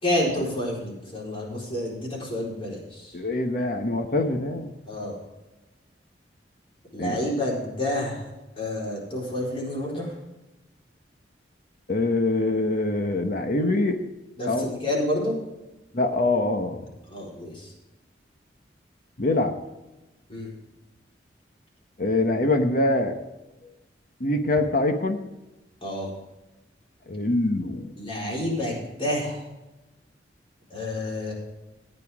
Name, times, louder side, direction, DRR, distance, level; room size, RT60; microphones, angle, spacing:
voice 1, 0.0-3.2 4.9-5.2 6.9-8.3 8.6-10.1 14.4-15.4 17.1-17.7 20.3-20.5 25.8-26.1 28.0-29.4 30.7-31.3, left 1 dB, 30° left, -3 dB, 4.2 m, -29 dB
voice 2, 3.1-4.7 7.0-7.2 11.9-14.0 14.5-14.7 15.9-16.8 19.2-19.6 22.0-23.2 24.2-25.2 27.1-27.9, left 2 dB, 50° left, 5 dB, 1.1 m, -24 dB
15.0 x 9.3 x 3.6 m, 1.0 s
head